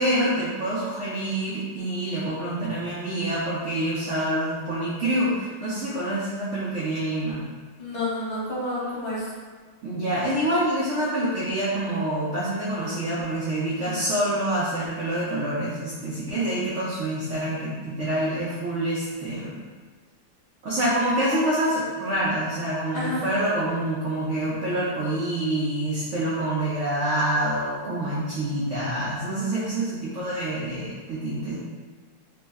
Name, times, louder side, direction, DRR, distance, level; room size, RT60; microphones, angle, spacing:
voice 1, 0.0-7.4 9.8-19.6 20.6-31.6, right 1 dB, 70° right, -8 dB, 0.7 m, -26 dB
voice 2, 7.8-9.2 13.8-14.0 22.9-23.3, left 1 dB, 40° left, -8 dB, 0.6 m, -30 dB
3.3 x 2.0 x 3.4 m, 1.5 s
omnidirectional pair, 2.0 m